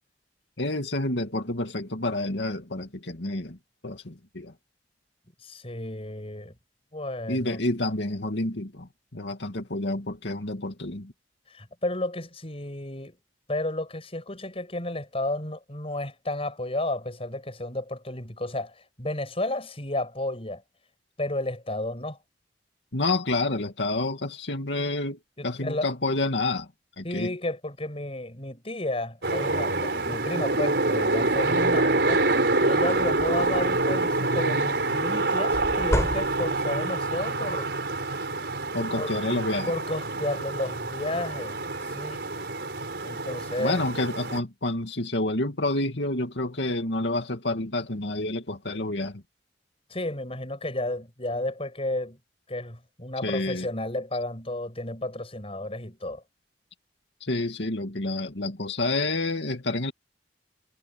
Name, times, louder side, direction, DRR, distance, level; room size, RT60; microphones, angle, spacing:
voice 1, 0.6-3.6 3.8-4.5 7.3-11.1 22.9-26.7 27.0-27.3 38.7-39.7 43.6-49.2 53.2-53.7 57.2-59.9, left 2 dB, 90° left, 2.3 m, -29 dB
voice 2, 5.4-6.5 6.9-7.6 11.5-13.2 13.5-20.6 21.2-22.2 25.4-25.9 27.0-32.2 32.6-37.7 38.9-39.1 39.6-42.2 43.0-43.8 49.9-52.2 52.5-56.2, left 1 dB, 35° left, 6.9 m, -32 dB
sound 1, 29.2-44.4, right 2 dB, 70° right, 5.3 m, -26 dB
sound 2, 32.9-33.9 35.5-36.8, equal, 15° left, 4.3 m, -31 dB
head